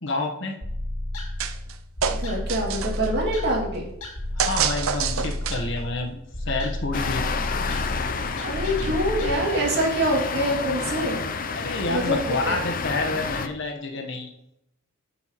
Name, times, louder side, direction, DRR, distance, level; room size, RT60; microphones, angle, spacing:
voice 1, 0.0-0.5 4.4-6.2 6.4-7.2 11.5-14.3, left 2 dB, 60° left, 3 dB, 1.2 m, -28 dB
sound 1, 0.6-9.3, left 1 dB, 85° left, 1.9 m, -32 dB
sound 2, 1.4-1.7 2.0-3.1 4.4-5.8, right 7 dB, 90° right, 0.6 m, -27 dB
voice 2, 2.1-3.9 8.4-11.2 11.9-12.6, right 1 dB, 55° right, -2 dB, 2.6 m, -25 dB
sound 3, 6.9-13.5, left 5 dB, 45° left, 0.6 m, -30 dB
10.0 x 5.6 x 3.1 m, 0.78 s
head